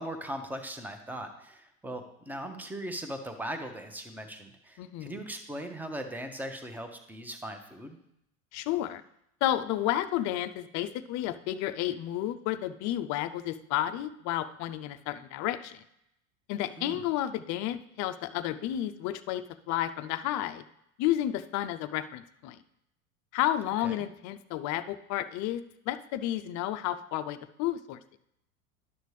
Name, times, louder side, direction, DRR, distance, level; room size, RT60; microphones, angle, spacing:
voice 1, 0.0-8.0 16.8-17.1 23.8-24.0, right 1 dB, 5° right, 6 dB, 0.9 m, -39 dB
voice 2, 4.8-5.2 8.5-9.0 9.4-15.8 16.5-20.6 21.0-22.6 23.3-28.0, left 13 dB, 45° left, 11 dB, 0.6 m, -31 dB
11.0 x 6.6 x 3.2 m, 0.79 s
hypercardioid pair, 95°, 42 cm